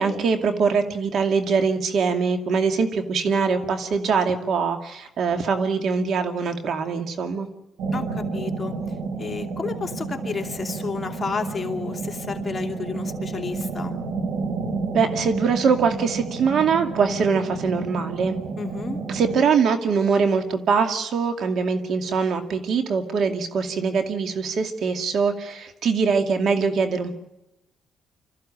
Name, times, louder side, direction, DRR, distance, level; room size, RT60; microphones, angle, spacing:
voice 1, 0.0-7.5 14.9-18.3 19.1-27.1, right 5 dB, 65° right, 6 dB, 2.5 m, -23 dB
sound 1, 7.8-19.4, right 4 dB, 85° right, 5.2 m, -30 dB
voice 2, 7.9-8.7 9.2-13.9 18.6-19.0, left 5 dB, 30° left, 3 dB, 2.7 m, -31 dB
26.0 x 14.5 x 8.8 m, 0.92 s
cardioid pair, 90°, 0 cm